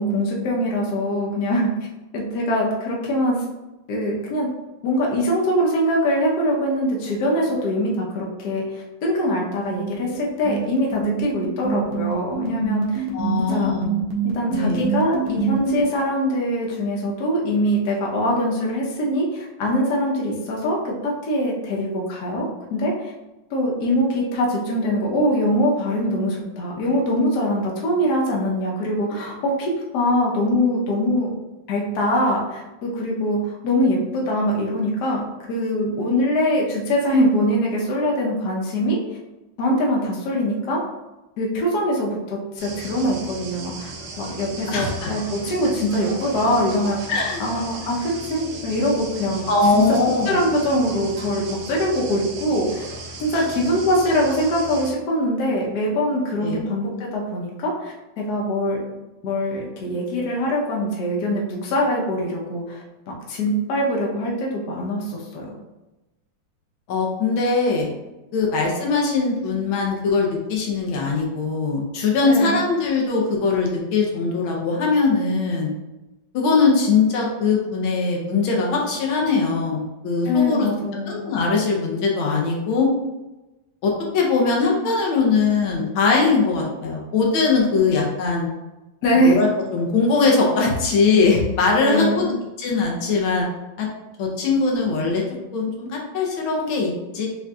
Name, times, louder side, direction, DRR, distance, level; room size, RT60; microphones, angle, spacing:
voice 1, 0.0-1.7 2.1-3.4 3.9-4.5 4.8-13.0 13.4-13.8 14.2-23.1 23.5-31.3 31.7-39.0 39.6-40.8 41.4-43.9 44.2-47.0 47.4-49.4 49.7-50.0 50.3-52.9 53.2-58.8 59.2-65.5 72.2-72.6 80.2-81.1 89.0-89.4 91.7-92.3, equal, 60° left, -2 dB, 1.3 m, -23 dB
sound 1, 9.7-15.8, right 10 dB, 70° right, 1.5 m, -26 dB
voice 2, 13.1-13.9 14.5-14.8 44.7-44.9 47.1-47.4 49.5-50.4 53.3-53.4 56.4-56.6 66.9-67.9 68.3-75.7 76.3-80.7 81.1-82.9 83.8-88.5 89.1-89.5 89.7-92.3 92.6-93.5 93.8-93.9 94.2-95.2 95.5-97.3, left 4 dB, 90° left, -1 dB, 1.6 m, -21 dB
sound 2, 42.6-54.9, right 2 dB, 90° right, 1.7 m, -36 dB
6.4 x 2.7 x 2.3 m, 1.0 s
omnidirectional pair, 2.2 m